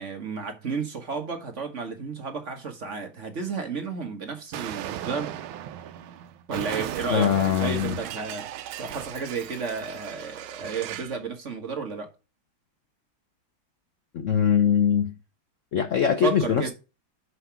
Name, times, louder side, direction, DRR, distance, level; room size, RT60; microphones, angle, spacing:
voice 1, 0.0-5.4 6.5-8.5 8.8-12.1 16.2-16.7, right 5 dB, 40° right, 1.4 m, -32 dB
Explosion, 4.5-11.2, right 11 dB, 80° right, 1.4 m, -36 dB
voice 2, 7.1-8.0 14.1-15.1 15.7-16.7, left 8 dB, 85° left, 0.6 m, -22 dB
5.7 x 5.6 x 5.7 m
omnidirectional pair, 2.2 m